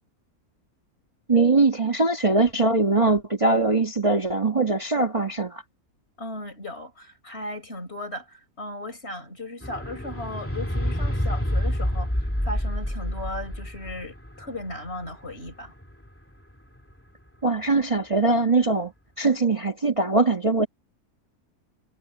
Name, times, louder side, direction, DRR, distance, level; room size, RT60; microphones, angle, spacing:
voice 1, 1.3-5.6 17.4-18.9 19.2-20.7, right 3 dB, 20° right, 1.6 m, -21 dB
voice 2, 6.2-15.7, left 1 dB, 45° left, 6.1 m, -36 dB
sound 1, 9.6-16.1 16.9-17.0, equal, 10° left, 2.4 m, -28 dB
omnidirectional pair, 1.5 m